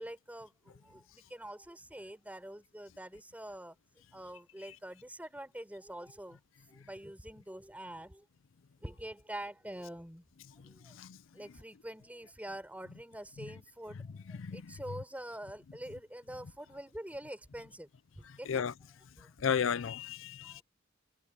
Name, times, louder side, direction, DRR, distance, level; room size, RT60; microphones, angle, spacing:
voice 1, 0.0-3.8 4.1-6.4 6.7-8.3 8.8-10.3 10.6-11.0 11.3-17.9 18.3-19.3 20.4-20.6, right 1 dB, 10° right, 5.2 m, -46 dB
voice 2, 14.4-14.7 18.5-18.7 19.4-20.6, left 7 dB, 80° left, 0.5 m, -33 dB
head